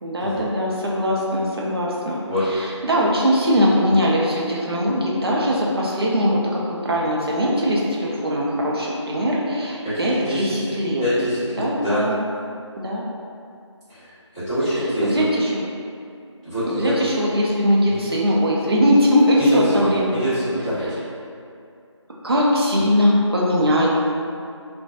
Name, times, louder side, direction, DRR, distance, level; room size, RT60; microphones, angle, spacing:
voice 1, 0.0-2.2 2.4-11.0 11.6-12.1 12.8-13.0 14.7-15.5 16.7-20.3 22.2-23.9, equal, 50° right, -4 dB, 0.5 m, -21 dB
voice 2, 2.3-2.7 9.8-10.6 11.0-12.1 13.9-14.1 14.3-15.2 16.4-16.9 17.9-18.0 19.4-20.9, equal, 10° right, -22 dB, 1.1 m, -24 dB
2.5 x 2.1 x 2.7 m, 2.5 s
figure-of-eight pair, 165°, 16 cm